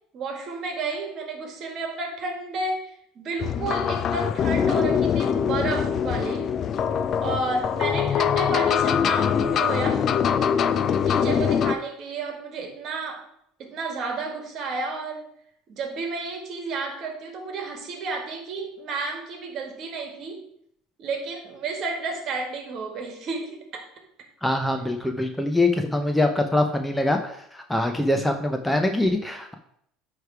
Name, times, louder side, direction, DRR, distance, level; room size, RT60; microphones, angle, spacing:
voice 1, 0.1-6.5 7.2-10.1 11.1-13.3 13.6-15.3 15.7-20.4 21.0-23.9, right 3 dB, 50° right, 4 dB, 1.8 m, -31 dB
sound 1, 3.4-11.8, left 7 dB, 45° left, 0.4 m, -23 dB
voice 2, 24.4-29.5, left 1 dB, 5° left, 5 dB, 0.7 m, -24 dB
9.3 x 3.3 x 4.7 m, 0.71 s
supercardioid pair, 100°, 0 cm